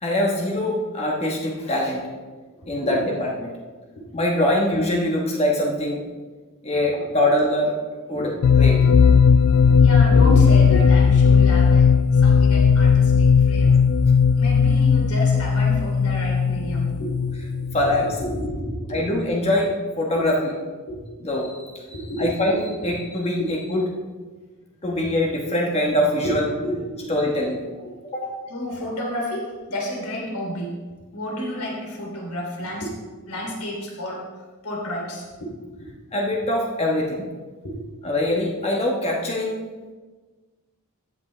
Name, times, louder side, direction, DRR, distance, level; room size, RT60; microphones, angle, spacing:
voice 1, 0.0-2.0 2.7-3.5 4.1-6.0 6.6-7.7 8.1-8.8 17.7-18.1 18.9-20.5 21.2-21.6 22.2-23.8 24.8-26.4 27.1-27.6 28.1-28.3 36.1-37.2 38.0-39.6, left 1 dB, 30° left, -2 dB, 1.3 m, -23 dB
voice 2, 2.6-3.0 3.9-4.1 6.7-7.0 8.1-8.3 8.8-9.0 9.8-11.9 12.2-13.7 14.3-19.0 20.9-21.0 21.9-22.6 23.4-23.5 26.2-27.1 27.8-27.9 28.3-30.7 31.1-32.9 33.3-34.2 34.6-35.9 37.6-37.9, equal, 80° left, -2 dB, 3.0 m, -31 dB
sound 1, 8.4-18.1, left 6 dB, 65° left, 0.3 m, -16 dB
13.0 x 8.1 x 3.3 m, 1.3 s
head